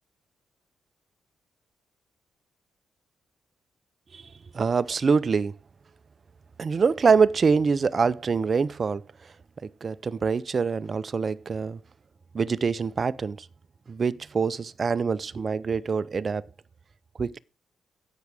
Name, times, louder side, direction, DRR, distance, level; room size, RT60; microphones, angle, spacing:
voice 1, 4.1-5.6 6.6-9.0 9.6-11.8 12.3-13.5 13.9-16.5 17.2-17.4, right 5 dB, 45° right, 0.5 m, -25 dB
16.5 x 6.1 x 3.5 m
cardioid pair, 85°, 0 cm